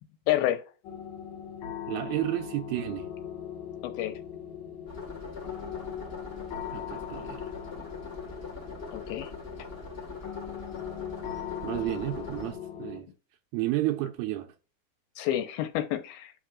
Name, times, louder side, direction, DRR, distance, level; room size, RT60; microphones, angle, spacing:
voice 1, 0.3-0.6 3.8-4.1 8.9-9.3 15.2-16.3, left 13 dB, 85° left, 2.7 m, -29 dB
sound 1, 0.8-13.0, left 9 dB, 60° left, 2.5 m, -40 dB
voice 2, 1.9-3.1 6.7-7.5 11.6-13.1 13.5-14.5, right 16 dB, 85° right, 2.5 m, -31 dB
sound 2, 4.9-12.5, left 4 dB, 40° left, 0.8 m, -42 dB
10.0 x 6.0 x 2.5 m
omnidirectional pair, 4.3 m